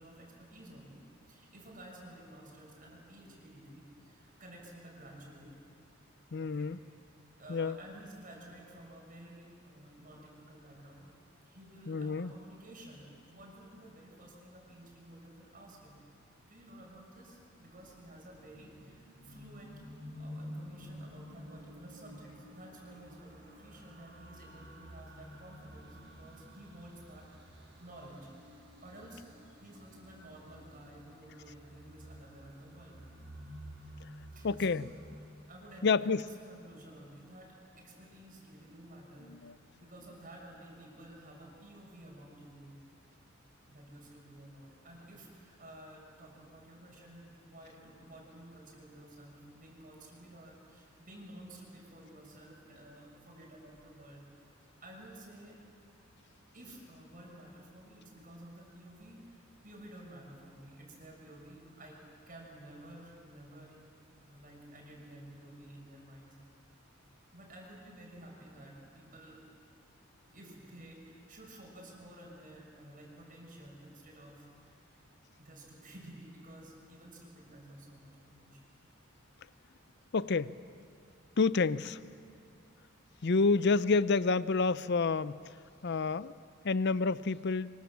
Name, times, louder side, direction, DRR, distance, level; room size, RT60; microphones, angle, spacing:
voice 1, 0.0-5.5 6.4-7.0 7.4-11.1 11.4-16.0 16.4-19.8 20.1-28.3 28.8-29.3 29.6-33.0 34.3-34.8 35.5-42.8 43.7-54.2 54.8-55.6 56.5-62.0 62.3-63.8 64.2-66.4 67.3-69.4 70.3-74.8 75.4-78.7, right 1 dB, 40° right, -2 dB, 6.2 m, -52 dB
voice 2, 6.3-6.8 7.5-7.8 11.9-12.3 34.4-34.8 35.8-36.2 39.3-39.5 80.1-80.5 81.4-82.0 83.2-85.4 85.8-86.3 86.6-87.7, left 4 dB, 55° left, 17 dB, 0.6 m, -28 dB
sound 1, 17.5-35.2, equal, 60° right, 6.8 m, -51 dB
26.0 x 25.5 x 7.4 m, 2.5 s
head